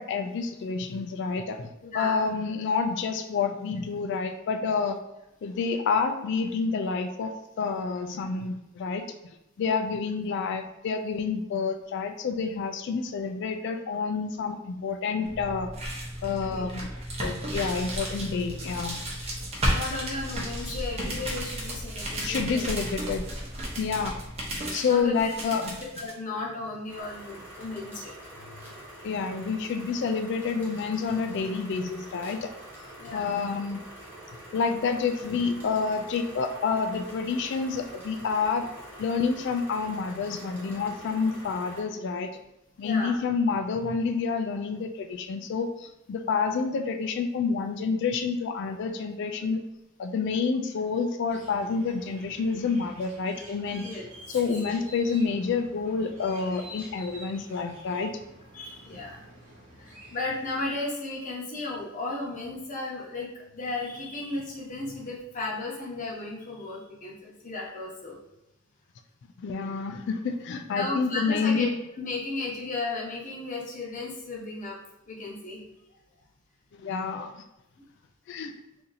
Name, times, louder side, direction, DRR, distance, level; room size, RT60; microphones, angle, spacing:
voice 1, 0.0-1.7 1.9-5.0 5.4-9.2 9.6-15.7 16.2-16.9 17.2-19.0 22.2-23.3 23.8-24.2 24.7-25.8 29.0-32.5 32.8-33.8 34.5-38.7 39.0-42.3 42.8-49.7 50.0-53.9 54.3-58.1 69.4-71.7 76.8-77.3 78.3-78.5, left 5 dB, 60° left, 6 dB, 0.3 m, -28 dB
voice 2, 1.8-2.2 16.4-16.7 19.7-22.9 24.9-25.3 26.0-28.1 28.5-28.6 33.0-33.3 42.8-43.2 53.8-54.1 58.5-59.2 59.8-68.2 70.7-74.8 75.1-75.6, left 2 dB, 40° left, -3 dB, 0.8 m, -35 dB
sound 1, 15.2-26.1, equal, 30° right, 0.7 m, -33 dB
sound 2, 26.9-41.8, right 1 dB, 10° right, 1.2 m, -46 dB
sound 3, 51.3-60.7, equal, 70° right, 1.0 m, -48 dB
2.8 x 2.5 x 3.9 m, 0.91 s
head